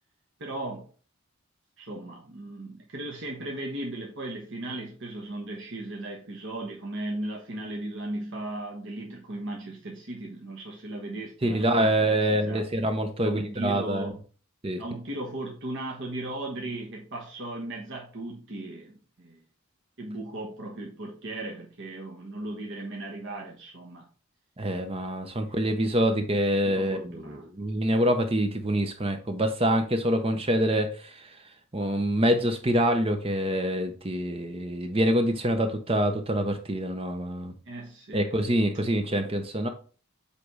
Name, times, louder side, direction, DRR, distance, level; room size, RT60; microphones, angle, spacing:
voice 1, 0.4-0.9 1.8-12.7 13.2-14.2 14.8-19.4 20.0-24.1 25.5-25.6 25.8-25.9 26.7-27.5 37.7-38.3, right 1 dB, 55° right, 1.1 m, -37 dB
voice 2, 11.4-14.1 14.6-14.8 24.6-31.3 31.7-37.5 38.1-39.7, right 1 dB, 25° right, 0.8 m, -26 dB
8.0 x 3.4 x 4.9 m
head